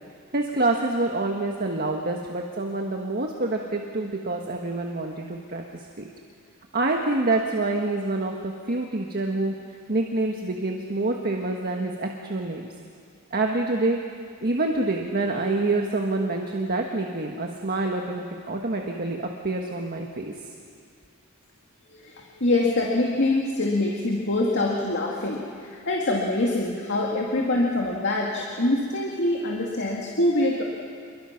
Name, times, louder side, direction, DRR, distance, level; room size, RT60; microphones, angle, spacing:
voice 1, 0.3-5.6 6.0-6.1 6.7-9.5 9.9-12.7 13.3-14.0 14.4-20.3, right 2 dB, 45° right, 1 dB, 1.5 m, -27 dB
voice 2, 21.9-30.6, left 2 dB, 60° left, -2 dB, 2.2 m, -24 dB
28.0 x 22.5 x 5.9 m, 2.2 s
head